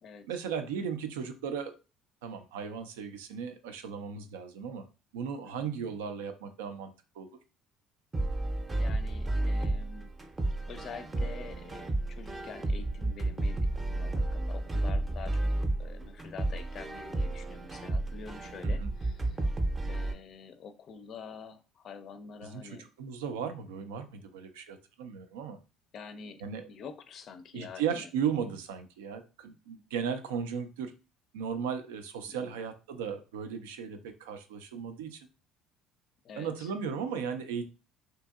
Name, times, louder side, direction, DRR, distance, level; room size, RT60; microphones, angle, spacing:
voice 1, 0.3-1.7 2.2-4.9 5.1-7.3 18.6-18.9 22.4-25.6 26.4-26.7 27.5-30.9 31.3-35.2 36.4-37.6, right 7 dB, 90° right, 8 dB, 0.4 m, -36 dB
sound 1, 8.1-20.1, right 1 dB, 25° right, 0.6 m, -32 dB
voice 2, 8.8-10.1 10.7-15.4 15.8-19.4 19.9-22.9 25.9-28.1 32.3-32.6 36.2-36.7, left 6 dB, 55° left, 10 dB, 0.4 m, -47 dB
2.7 x 2.6 x 2.3 m, 0.32 s
supercardioid pair, 75°, 0 cm